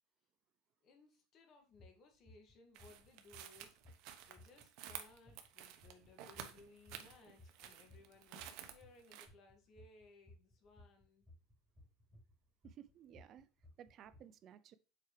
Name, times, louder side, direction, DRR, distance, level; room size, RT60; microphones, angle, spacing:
voice 1, 0.8-3.8 4.2-11.2, left 3 dB, 45° left, 2.0 m, -63 dB
sound 1, 1.7-1.9 2.3-2.5 2.8-9.0 9.3-14.2, left 2 dB, 15° right, 4.1 m, -60 dB
sound 2, 2.7-9.3, right 10 dB, 65° right, 1.0 m, -52 dB
voice 2, 12.6-13.5 13.8-14.8, right 10 dB, 45° right, 0.5 m, -57 dB
7.3 x 4.7 x 3.3 m
supercardioid pair, 120°, 0 cm